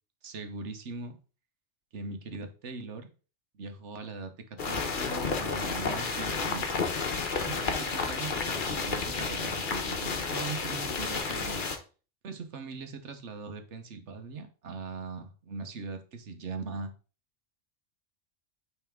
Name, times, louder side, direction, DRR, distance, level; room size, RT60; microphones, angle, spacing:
voice 1, 0.2-1.2 1.9-3.1 3.5-6.8 7.4-11.6 12.2-16.9, right 4 dB, 75° right, 1.3 m, -40 dB
sound 1, 4.6-11.8, left 4 dB, 45° left, 1.1 m, -31 dB
9.0 x 3.5 x 3.6 m
omnidirectional pair, 1.2 m